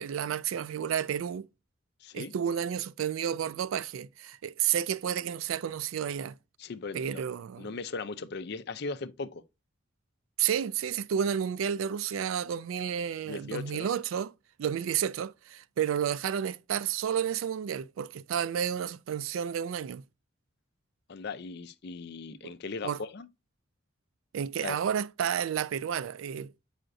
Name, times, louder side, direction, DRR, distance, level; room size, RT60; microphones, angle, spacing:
voice 1, 0.0-1.5 2.1-6.3 6.9-7.7 10.4-14.3 14.6-20.0 22.4-22.5 22.8-23.0 24.3-26.5, right 8 dB, 85° right, 0.3 m, -31 dB
voice 2, 2.0-2.3 6.6-7.2 7.6-9.4 13.2-13.9 21.1-23.3 24.6-24.8, left 4 dB, 55° left, 0.5 m, -38 dB
7.7 x 5.0 x 2.5 m
head